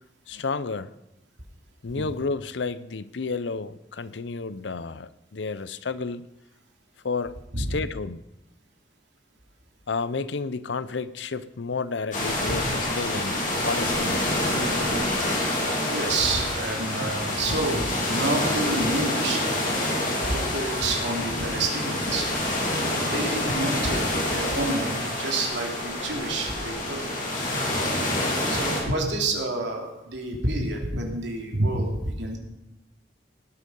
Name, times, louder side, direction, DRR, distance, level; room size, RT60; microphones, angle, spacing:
voice 1, 0.3-0.9 1.8-6.3 7.0-8.2 9.9-14.4, left 4 dB, 85° left, 16 dB, 0.6 m, -31 dB
sound 1, 12.1-28.8, left 1 dB, 45° left, 3.5 m, -27 dB
voice 2, 15.9-19.6 20.2-22.3 23.1-27.2 28.5-32.4, right 2 dB, 85° right, 1 dB, 2.8 m, -29 dB
18.5 x 8.4 x 5.5 m, 0.91 s
head